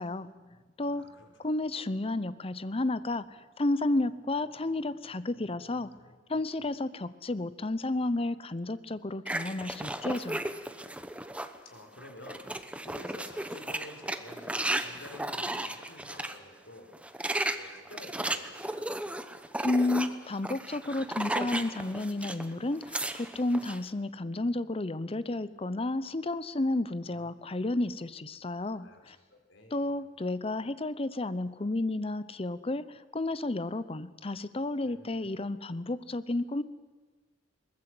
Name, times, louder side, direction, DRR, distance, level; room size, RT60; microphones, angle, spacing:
voice 1, 0.0-1.1 1.4-5.9 6.3-10.4 19.6-29.2 29.7-36.6, left 2 dB, 30° left, 15 dB, 0.7 m, -32 dB
voice 2, 0.9-1.5 5.9-6.7 11.6-16.9 17.5-18.9 27.0-27.3 28.7-30.0 34.8-35.1, left 1 dB, 85° left, 3 dB, 4.3 m, -51 dB
sound 1, 9.3-11.6 12.0-16.4 16.9-22.5 22.7-23.8, right 1 dB, 5° right, 0.9 m, -35 dB
22.0 x 19.5 x 7.8 m, 1.3 s
head